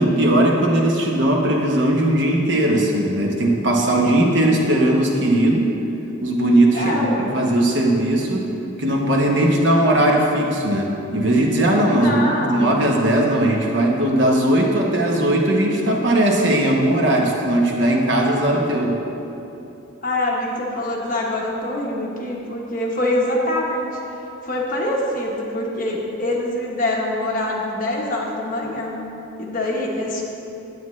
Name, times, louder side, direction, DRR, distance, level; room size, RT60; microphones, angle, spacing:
voice 1, 0.0-5.7 6.2-8.5 8.8-19.0, right 1 dB, 60° right, 0 dB, 1.0 m, -18 dB
voice 2, 6.7-7.3 11.9-12.7 20.0-24.0 24.4-29.0 29.4-30.2, left 1 dB, 40° left, -2 dB, 1.2 m, -24 dB
9.5 x 8.9 x 3.2 m, 2.9 s
head